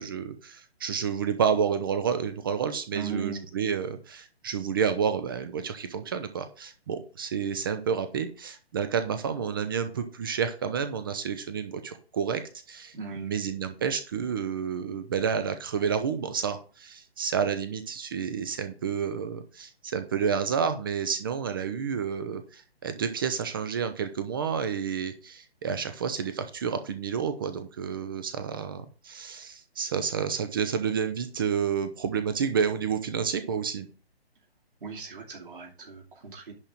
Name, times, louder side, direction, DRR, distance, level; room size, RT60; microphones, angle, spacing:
voice 1, 0.0-12.4 12.7-33.9, right 7 dB, 20° right, 9 dB, 0.7 m, -30 dB
voice 2, 2.9-3.4 12.9-13.3 34.8-36.5, right 5 dB, 55° right, -2 dB, 2.7 m, -37 dB
10.5 x 3.8 x 7.3 m, 0.36 s
figure-of-eight pair, 140°, 32 cm